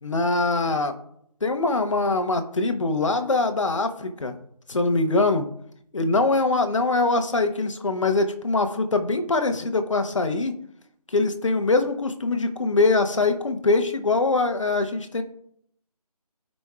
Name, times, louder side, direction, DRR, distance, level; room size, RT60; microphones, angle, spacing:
voice 1, 0.0-0.9 1.4-4.3 4.7-5.5 5.9-10.5 11.1-15.2, left 3 dB, 50° left, 7 dB, 1.0 m, -23 dB
13.0 x 5.3 x 2.4 m, 0.70 s
figure-of-eight pair, 165°, 20 cm